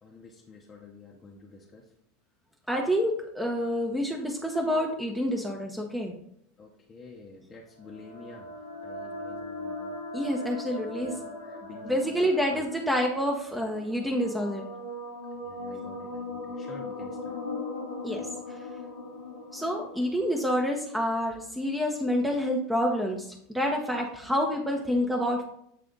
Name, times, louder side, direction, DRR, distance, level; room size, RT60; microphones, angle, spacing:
voice 1, 0.0-1.9 6.6-10.0 10.9-12.6 15.4-17.4, left 3 dB, 25° left, -1 dB, 0.9 m, -48 dB
voice 2, 2.7-6.1 10.1-11.1 11.8-14.7 18.0-18.6 19.5-25.4, equal, 5° right, 1 dB, 0.8 m, -28 dB
sound 1, 7.8-21.4, left 2 dB, 85° left, 1.5 m, -39 dB
8.3 x 3.4 x 3.8 m, 0.71 s
figure-of-eight pair, 85°, 0 cm